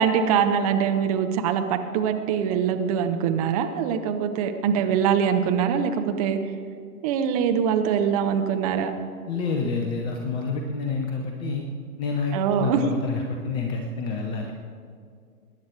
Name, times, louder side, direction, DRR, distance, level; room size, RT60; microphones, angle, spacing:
voice 1, 0.0-6.4 7.0-8.9 12.3-12.8, right 7 dB, 25° right, 6 dB, 0.9 m, -23 dB
voice 2, 9.3-11.6 12.0-14.5, left 4 dB, 10° left, 2 dB, 0.6 m, -28 dB
22.0 x 10.5 x 4.9 m, 2.2 s
figure-of-eight pair, 115°, 44 cm